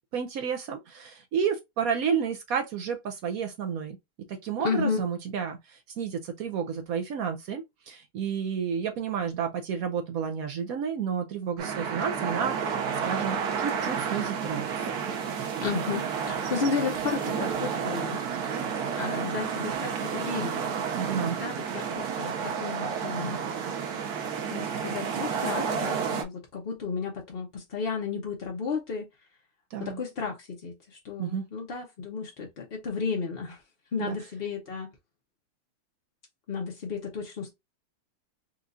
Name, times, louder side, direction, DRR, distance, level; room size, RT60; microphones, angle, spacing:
voice 1, 0.1-4.0 4.3-14.8 21.0-21.4 29.7-30.0 31.2-31.5 34.0-34.2, right 7 dB, 80° right, 0.7 m, -31 dB
voice 2, 4.6-5.0 15.6-18.2 19.0-20.7 21.1-23.4 24.5-29.1 29.8-33.6 33.9-34.9 36.5-37.5, left 5 dB, 55° left, 0.6 m, -33 dB
sound 1, 11.6-26.2, right 6 dB, 60° right, 1.2 m, -31 dB
4.5 x 2.4 x 2.4 m
omnidirectional pair, 2.2 m